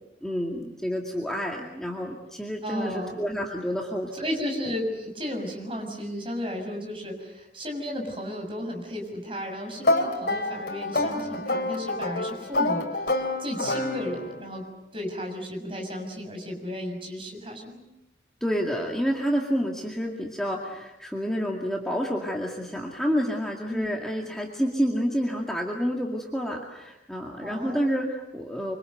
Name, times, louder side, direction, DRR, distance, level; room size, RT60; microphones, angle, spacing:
voice 1, 0.2-4.3 18.4-28.8, equal, 5° left, -1 dB, 2.2 m, -29 dB
voice 2, 2.6-3.2 4.1-14.6 14.9-17.8 23.7-23.9 27.4-27.9, equal, 30° right, 2 dB, 6.7 m, -34 dB
sound 1, 9.8-14.5, left 2 dB, 60° left, 3.5 m, -27 dB
26.0 x 25.5 x 8.0 m, 0.95 s
head